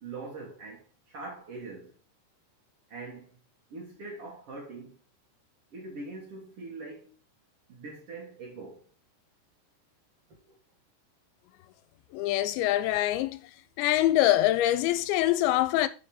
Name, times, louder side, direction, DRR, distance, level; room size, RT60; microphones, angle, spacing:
voice 1, 0.0-2.0 2.9-3.4 3.7-5.0 5.7-7.1 7.7-8.9 10.3-10.5, right 3 dB, 70° right, 1.3 m, -43 dB
voice 2, 12.1-13.4 13.8-15.9, left 14 dB, 85° left, 2.9 m, -24 dB
7.6 x 6.0 x 4.8 m
omnidirectional pair, 5.2 m